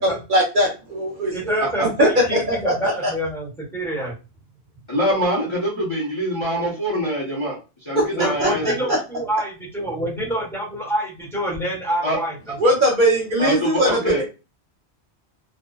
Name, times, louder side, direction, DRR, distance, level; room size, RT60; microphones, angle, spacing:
voice 1, 0.0-3.1 7.9-8.0 8.4-8.7 12.6-14.2, equal, 55° right, -1 dB, 0.7 m, -20 dB
voice 2, 1.3-4.1 8.1-12.6, right 1 dB, ahead, -5 dB, 0.9 m, -27 dB
voice 3, 4.9-7.6 7.9-8.9 12.0-12.2 13.4-14.2, equal, 30° left, -5 dB, 0.6 m, -24 dB
2.6 x 2.1 x 2.3 m, 0.30 s
omnidirectional pair, 1.1 m